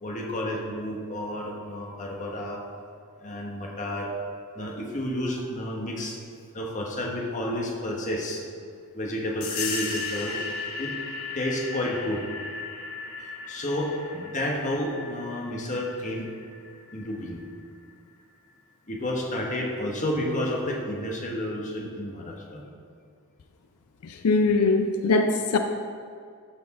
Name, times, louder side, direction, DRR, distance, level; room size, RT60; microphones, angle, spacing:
voice 1, 0.0-2.6 3.2-4.1 4.5-6.2 6.5-8.4 8.9-10.4 10.8-10.9 11.3-12.2 13.5-16.3 16.9-17.4 18.9-22.6, left 1 dB, 35° left, -1 dB, 1.3 m, -30 dB
sound 1, 9.4-17.7, left 4 dB, 65° left, 1.0 m, -36 dB
voice 2, 24.0-25.6, left 3 dB, 90° left, 6 dB, 0.5 m, -22 dB
13.0 x 4.5 x 4.2 m, 2.2 s
head